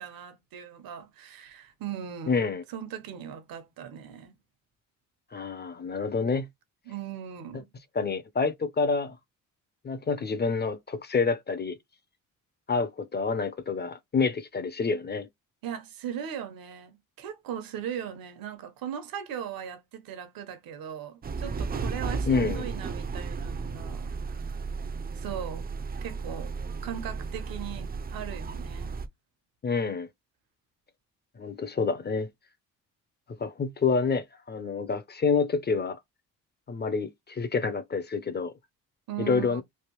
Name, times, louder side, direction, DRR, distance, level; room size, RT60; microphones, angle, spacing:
voice 1, 0.0-2.4 2.7-4.3 6.9-7.7 15.6-24.1 25.1-25.7 26.0-26.5 26.8-29.0 39.1-39.6, right 9 dB, 75° right, 1.1 m, -38 dB
voice 2, 2.3-2.6 5.3-6.5 7.9-9.2 9.8-11.8 12.7-15.3 22.3-22.7 29.6-30.1 31.4-32.3 33.4-36.0 36.7-38.5 39.2-39.6, left 4 dB, 30° left, 0.6 m, -28 dB
sound 1, 21.2-29.1, right 4 dB, 25° right, 0.5 m, -34 dB
3.4 x 2.5 x 3.0 m
cardioid pair, 85°, 35 cm